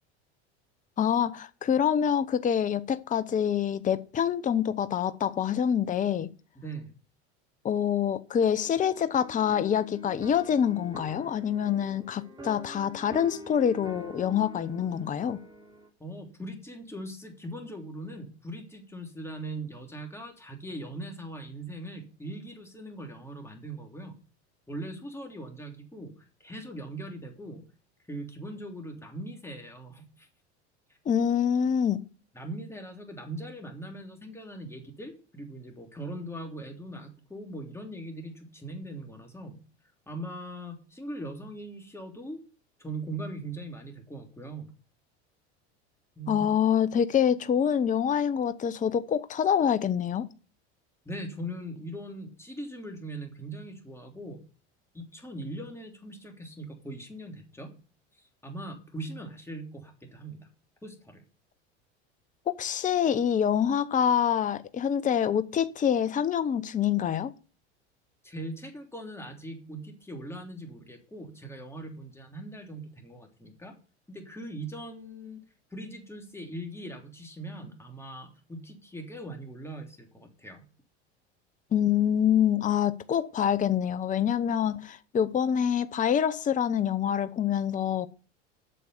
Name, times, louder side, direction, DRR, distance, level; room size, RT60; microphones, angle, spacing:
voice 1, 1.0-6.3 7.6-15.4 31.1-32.0 46.3-50.3 62.5-67.3 81.7-88.1, left 8 dB, 25° left, 0.7 m, -26 dB
voice 2, 6.5-6.9 16.0-24.1 24.7-27.6 28.1-30.3 32.3-39.6 40.1-42.4 42.8-44.7 46.2-46.5 51.0-54.4 54.9-57.7 58.4-60.4 60.8-61.2 68.2-73.7 74.1-75.4 75.7-80.7, right 1 dB, 5° left, 3.2 m, -40 dB
sound 1, 8.6-15.9, equal, 15° right, 3.0 m, -45 dB
8.6 x 6.7 x 8.1 m
hypercardioid pair, 90°, 34 cm